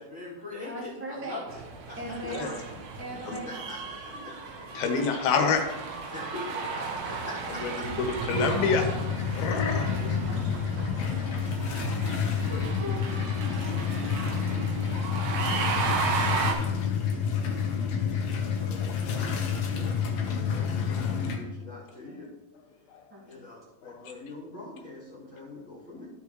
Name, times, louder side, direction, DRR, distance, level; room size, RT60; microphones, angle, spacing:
voice 1, 0.0-1.6 1.9-2.0 3.1-4.1 4.8-4.9 6.1-6.8 7.3-7.4 9.6-10.2 12.5-12.6 18.6-22.3 23.3-26.1, left 2 dB, 35° left, -8 dB, 2.5 m, -44 dB
voice 2, 0.6-1.4 2.0-2.7 3.0-3.7 4.1-4.2 6.3-7.6 9.3-10.4 10.8-10.9 12.0-12.5 12.8-13.1 23.1-23.4, right 1 dB, 10° right, -5 dB, 0.6 m, -40 dB
sound 1, 1.5-16.5, right 4 dB, 80° right, 1.3 m, -35 dB
voice 3, 2.1-2.5 3.3-3.4 4.7-5.7 7.5-8.9 9.3-9.9 20.9-21.0 22.9-23.0 23.8-24.1, left 5 dB, 85° left, 4 dB, 2.9 m, -28 dB
sound 2, 8.3-21.4, left 6 dB, 65° left, 1.7 m, -29 dB
14.0 x 5.6 x 3.1 m, 1.0 s
omnidirectional pair, 4.2 m